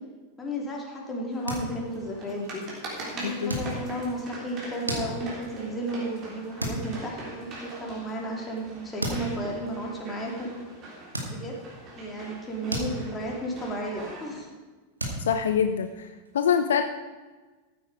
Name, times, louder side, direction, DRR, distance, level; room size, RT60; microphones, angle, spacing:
voice 1, 0.4-2.6 3.1-10.5 11.2-11.6 12.0-14.5, right 1 dB, 15° left, -1 dB, 3.0 m, -33 dB
sound 1, 1.3-14.4, right 2 dB, 35° right, 3.6 m, -43 dB
sound 2, 1.3-2.1 2.4-2.7 3.4-4.1 4.6-5.5 6.0-6.3 6.6-6.9 7.3-7.4 8.5-8.6 9.0-9.4 10.0-10.2 11.1-11.7 12.2-13.4 13.7-14.0 14.3-14.4 15.0-16.3, right 1 dB, 80° right, 2.3 m, -34 dB
voice 2, 15.3-16.1 16.3-16.8, left 7 dB, 65° left, 9 dB, 0.6 m, -24 dB
14.0 x 8.8 x 4.8 m, 1.3 s
figure-of-eight pair, 90°, 0 cm